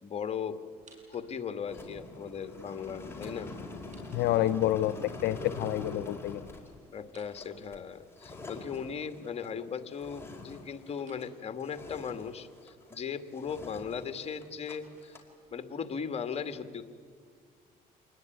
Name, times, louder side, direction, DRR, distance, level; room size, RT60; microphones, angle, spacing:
voice 1, 0.0-0.6 1.1-3.5 6.9-15.2 15.5-16.8, left 6 dB, 35° left, 9 dB, 2.1 m, -38 dB
sound 1, 0.7-1.7 3.7-4.9 7.0-8.3 11.0-11.3 14.0-15.6, right 3 dB, 45° right, 7.0 m, -62 dB
sound 2, 1.7-11.3 11.6-13.0 13.3-14.7 15.0-15.3, left 2 dB, 15° left, 4.5 m, -45 dB
voice 2, 4.1-4.9 5.2-6.4, left 13 dB, 80° left, 13 dB, 0.7 m, -28 dB
27.5 x 20.5 x 9.4 m, 2.1 s
cardioid pair, 110°, 17 cm